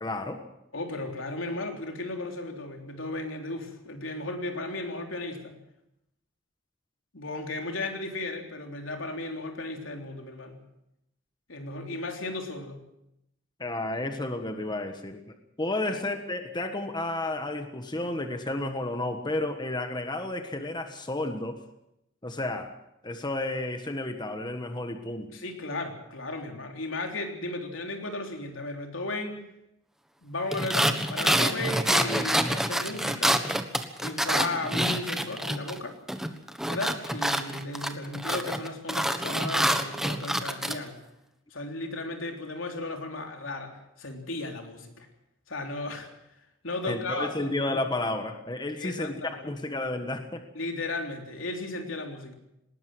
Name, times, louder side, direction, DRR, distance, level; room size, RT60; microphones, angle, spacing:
voice 1, 0.0-0.4 13.6-21.6 22.2-22.7 23.0-25.3 46.9-50.4, left 2 dB, 20° left, 6 dB, 1.4 m, -32 dB
voice 2, 0.7-5.6 7.1-10.6 11.5-12.8 15.8-16.0 25.3-29.4 30.2-33.4 34.0-36.0 36.6-41.0 41.5-45.1 45.5-46.1 46.6-47.7 48.8-49.5 50.5-52.3, left 2 dB, 80° left, 3 dB, 3.5 m, -35 dB
sound 1, 30.5-35.8 36.1-40.8, equal, ahead, 1.3 m, -27 dB
19.5 x 19.0 x 7.8 m, 0.84 s
head